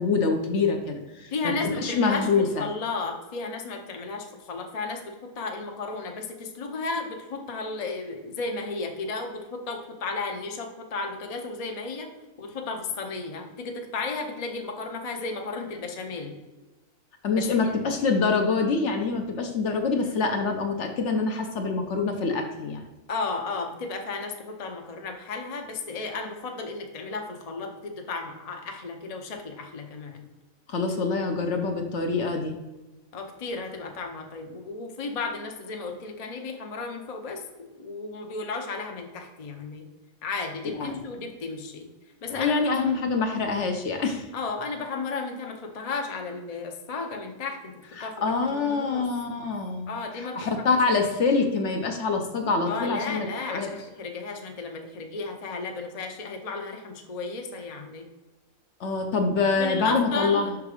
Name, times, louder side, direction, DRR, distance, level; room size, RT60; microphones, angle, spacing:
voice 1, 0.0-2.7 17.2-22.8 30.7-32.5 40.8-41.0 42.3-44.3 48.0-53.7 58.8-60.4, left 4 dB, 60° left, 4 dB, 0.9 m, -25 dB
voice 2, 1.3-12.1 12.4-16.4 17.3-17.8 23.1-30.3 33.1-39.9 40.2-41.9 42.2-42.9 44.3-49.0 49.9-50.7 52.7-58.1 59.6-60.5, left 3 dB, 40° left, 3 dB, 0.6 m, -34 dB
5.8 x 3.6 x 4.8 m, 1.2 s
omnidirectional pair, 1.5 m